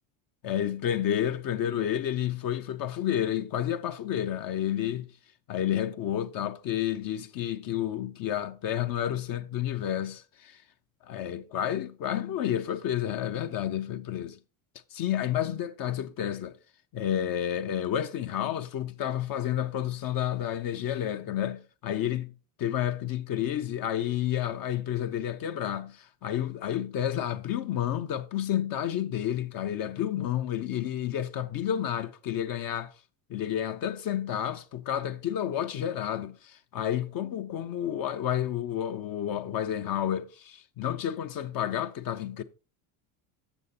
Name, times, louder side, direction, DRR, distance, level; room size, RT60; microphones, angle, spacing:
voice 1, 0.4-5.1 5.5-10.6 11.0-14.4 14.9-16.6 16.9-22.3 22.6-32.9 33.3-42.4, left 10 dB, 45° left, 0.7 m, -30 dB
8.1 x 6.5 x 4.1 m
supercardioid pair, 110°, 48 cm